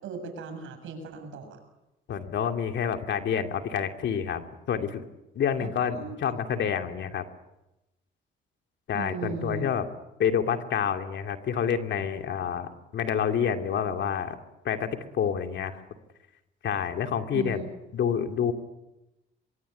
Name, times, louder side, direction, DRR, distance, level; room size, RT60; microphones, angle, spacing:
voice 1, 0.0-1.6 5.6-6.2 8.9-9.7 17.3-17.7, right 5 dB, 80° right, 6 dB, 7.1 m, -37 dB
voice 2, 2.1-5.0 5.3-7.2 8.9-9.9 10.2-14.4 14.6-15.8 16.6-17.6 17.9-18.5, left 8 dB, 65° left, 5 dB, 2.7 m, -28 dB
24.0 x 23.0 x 9.8 m, 0.97 s
cardioid pair, 90°, 20 cm